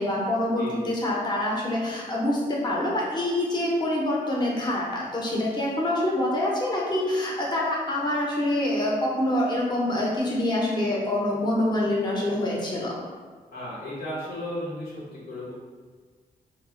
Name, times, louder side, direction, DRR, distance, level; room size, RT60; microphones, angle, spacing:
voice 1, 0.0-13.0, left 1 dB, 25° left, -4 dB, 0.7 m, -26 dB
voice 2, 0.6-0.9 13.5-15.5, left 1 dB, 75° left, -6 dB, 0.9 m, -35 dB
2.3 x 2.0 x 3.5 m, 1.5 s
supercardioid pair, 50°, 16 cm